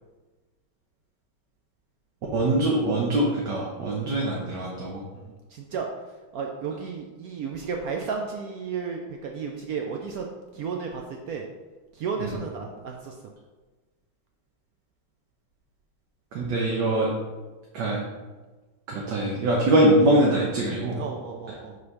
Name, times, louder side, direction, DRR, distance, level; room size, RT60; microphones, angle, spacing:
voice 1, 2.3-5.0 12.2-12.3 16.3-17.1 17.7-18.0 18.9-21.0, right 1 dB, 65° right, -3 dB, 1.5 m, -23 dB
voice 2, 5.1-10.3 10.5-11.5 11.9-13.2 21.0-21.8, right 5 dB, 90° right, 2 dB, 0.8 m, -33 dB
5.2 x 4.1 x 5.3 m, 1.2 s
omnidirectional pair, 2.2 m